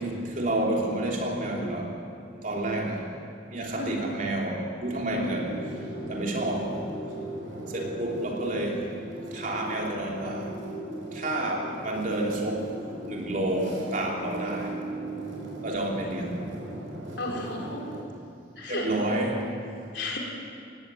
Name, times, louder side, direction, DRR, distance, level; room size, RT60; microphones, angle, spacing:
voice 1, 0.0-1.9 2.4-3.0 3.5-5.6 6.1-6.8 7.7-8.8 9.3-10.5 11.1-12.7 13.1-14.7 15.6-16.4 18.7-19.5, right 1 dB, 40° right, -1 dB, 3.2 m, -29 dB
voice 2, 3.8-4.1 5.1-5.4 17.2-17.8 18.6-18.9 19.9-20.2, left 1 dB, 65° left, -1 dB, 4.1 m, -33 dB
sound 1, 5.2-18.0, right 1 dB, 75° right, 5.8 m, -38 dB
18.5 x 17.0 x 8.4 m, 2.4 s
head